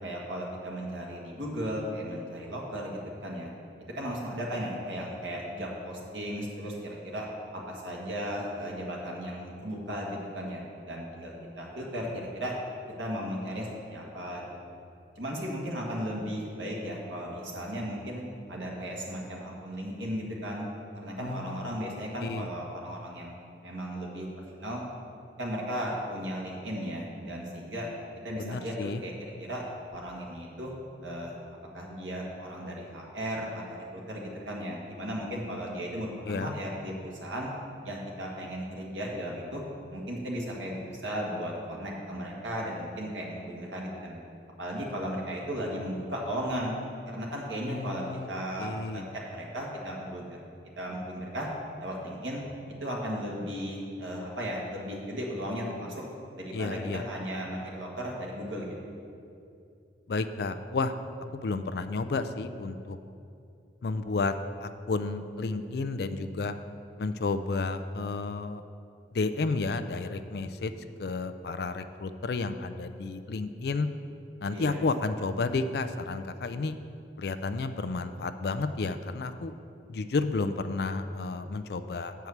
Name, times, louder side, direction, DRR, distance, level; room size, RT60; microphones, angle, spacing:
voice 1, 0.0-3.5 3.9-7.3 7.5-12.5 13.0-14.7 15.2-18.2 18.5-20.7 21.0-23.3 23.6-24.3 24.6-24.8 25.4-27.9 28.2-29.1 29.4-29.6 29.9-30.7 31.0-31.3 31.7-37.5 37.8-39.6 39.9-44.2 44.6-46.7 47.1-49.0 49.3-50.4 50.8-51.5 51.8-52.4 52.8-56.0 56.4-58.8 74.5-74.9, equal, 90° right, -3 dB, 1.6 m, -36 dB
voice 2, 21.2-21.8 22.2-22.5 28.4-29.0 36.3-36.5 47.7-48.3 48.6-49.0 56.5-57.0 60.1-60.9 61.3-63.0 63.8-64.3 64.6-66.5 67.0-68.6 69.1-70.7 71.0-73.9 74.4-76.8 77.2-79.5 79.9-82.1, left 3 dB, 60° left, 10 dB, 0.4 m, -31 dB
7.9 x 4.7 x 7.1 m, 2.5 s
head